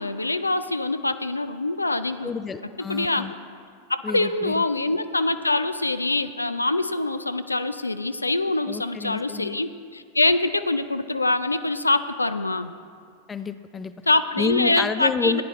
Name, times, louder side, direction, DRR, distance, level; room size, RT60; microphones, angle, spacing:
voice 1, 0.0-2.3 2.9-3.4 3.9-12.7 14.1-15.4, left 2 dB, 80° left, 11 dB, 0.3 m, -24 dB
voice 2, 2.2-3.3 4.0-4.6 8.7-9.6 13.3-13.9 14.4-15.4, left 5 dB, 15° left, 12 dB, 0.4 m, -29 dB
15.0 x 9.5 x 3.2 m, 2.2 s
figure-of-eight pair, 90°, 0 cm